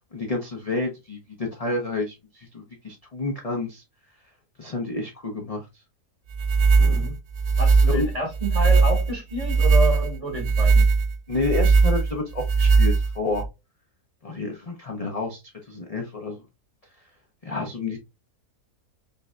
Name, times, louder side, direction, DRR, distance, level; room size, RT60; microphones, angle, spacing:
voice 1, 0.1-3.8 4.6-5.6 6.8-7.1 7.9-8.1 11.3-13.4 14.2-15.4 15.7-16.4 17.4-18.0, left 3 dB, 35° left, 0.6 m, -29 dB
sound 1, 6.3-13.5, right 4 dB, 65° right, 0.6 m, -19 dB
voice 2, 6.8-7.1 7.6-10.8, right 1 dB, 30° right, 1.2 m, -29 dB
5.5 x 2.7 x 2.2 m
omnidirectional pair, 1.6 m